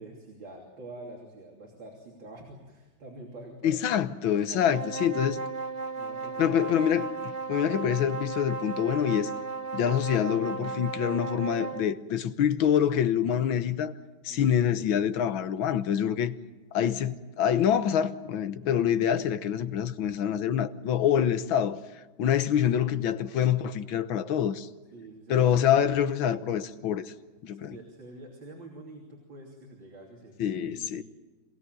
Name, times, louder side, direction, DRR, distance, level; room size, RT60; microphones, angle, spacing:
voice 1, 0.0-4.0 4.5-5.3 5.9-6.6 14.3-14.6 24.9-25.7 27.5-31.0, right 2 dB, 70° right, 3.9 m, -46 dB
voice 2, 3.6-5.4 6.4-9.3 9.7-13.9 14.3-16.3 16.7-21.8 22.2-24.7 25.3-27.1 27.4-27.8 30.4-31.0, left 9 dB, 85° left, 1.8 m, -26 dB
sound 1, 4.5-11.9, right 4 dB, 25° right, 1.4 m, -35 dB
26.0 x 17.0 x 9.3 m
omnidirectional pair, 2.1 m